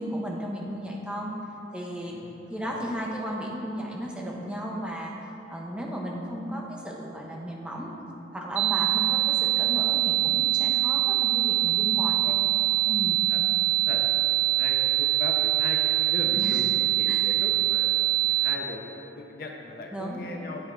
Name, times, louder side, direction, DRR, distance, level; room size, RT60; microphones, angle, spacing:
voice 1, 0.0-1.3 1.7-2.1 2.5-5.1 5.5-7.9 8.3-12.2 12.9-13.2 16.3-16.7 17.1-17.4 19.9-20.3, equal, 5° right, -2 dB, 0.6 m, -34 dB
voice 2, 2.1-2.8 12.2-12.4 13.3-13.4 13.7-14.0 14.3-18.0 18.3-20.7, left 2 dB, 55° left, 2 dB, 0.5 m, -38 dB
sound 1, 8.6-18.6, right 16 dB, 65° right, 0.4 m, -24 dB
9.7 x 3.4 x 4.5 m, 3.0 s
head